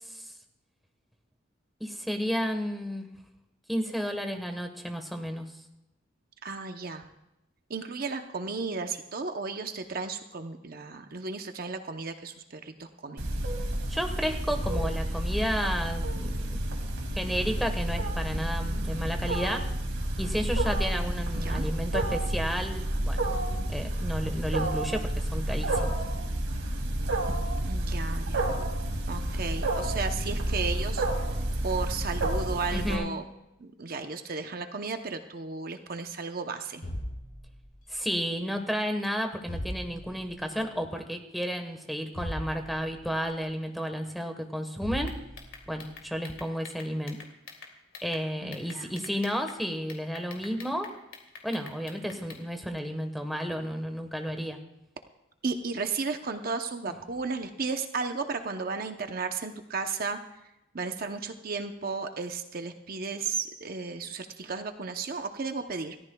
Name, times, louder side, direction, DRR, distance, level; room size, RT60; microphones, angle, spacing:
voice 1, 1.8-3.1 3.7-5.5 13.9-16.7 17.2-19.7 20.2-23.4 23.7-25.9 32.7-33.1 37.9-45.1 45.7-47.2 48.0-50.9 51.4-54.6, equal, ahead, 4 dB, 1.2 m, -32 dB
voice 2, 6.4-7.0 7.7-13.3 21.4-21.6 27.6-28.6 29.1-31.0 31.6-33.2 33.6-36.8 48.4-48.9 55.4-60.2 60.7-65.9, right 4 dB, 50° right, 6 dB, 0.8 m, -34 dB
Wild animals, 13.2-32.9, right 1 dB, 85° right, 2.3 m, -30 dB
sound 1, 36.8-38.0 39.5-40.4 42.2-43.2 44.8-45.8, equal, 45° left, 7.1 m, -38 dB
sound 2, 45.0-48.2 48.5-49.6 49.9-52.4, left 5 dB, 80° left, 2.6 m, -46 dB
28.0 x 14.0 x 2.3 m, 0.90 s
head